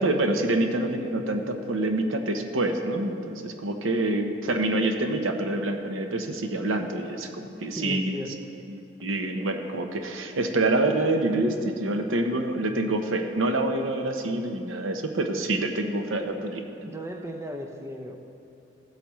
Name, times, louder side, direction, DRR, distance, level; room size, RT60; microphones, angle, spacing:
voice 1, 0.0-8.1 8.7-16.6, right 2 dB, 80° right, 5 dB, 0.8 m, -26 dB
voice 2, 7.8-8.4 16.8-18.2, equal, 15° right, 3 dB, 0.5 m, -36 dB
15.5 x 8.2 x 3.1 m, 2.7 s
head